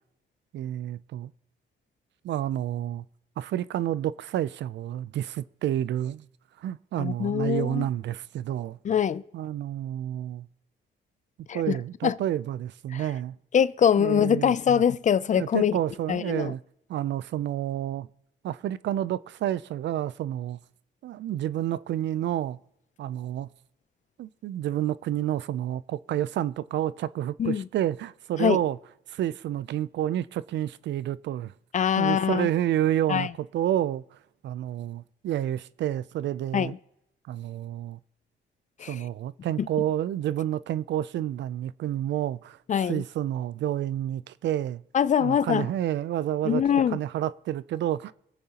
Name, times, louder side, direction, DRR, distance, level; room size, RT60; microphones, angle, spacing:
voice 1, 0.5-1.3 2.2-3.0 3.4-6.2 6.6-8.8 9.3-10.5 11.5-13.4 14.0-14.8 15.4-16.6 16.9-18.1 18.4-20.6 21.0-22.6 23.0-23.5 24.2-28.8 29.1-31.5 32.0-34.0 34.4-36.7 37.3-38.0 38.9-42.6 42.9-44.8 45.2-46.6 46.9-48.1, right 12 dB, 65° right, 0.4 m, -29 dB
voice 2, 7.0-7.9 8.8-9.2 11.5-11.8 12.0-12.2 12.9-13.0 13.5-15.8 16.1-16.5 27.4-27.6 28.4-28.6 31.7-32.5 33.1-33.3 36.5-36.8 38.8-39.0 39.6-39.7 42.7-43.0 44.9-45.7 46.4-47.0, left 8 dB, 40° left, 0.4 m, -23 dB
24.5 x 8.5 x 2.9 m
cardioid pair, 90°, 20 cm